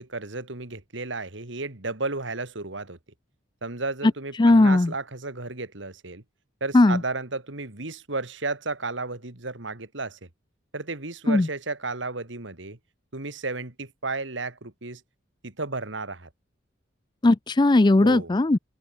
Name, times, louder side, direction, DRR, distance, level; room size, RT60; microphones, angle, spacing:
voice 1, 0.0-3.0 3.6-6.2 6.6-10.2 10.7-12.8 13.1-15.0 15.4-16.3 18.0-18.3, right 3 dB, 70° right, 2.4 m, -33 dB
voice 2, 4.4-4.9 6.7-7.0 11.3-11.5 17.2-18.6, left 2 dB, 20° left, 0.4 m, -18 dB
open air
head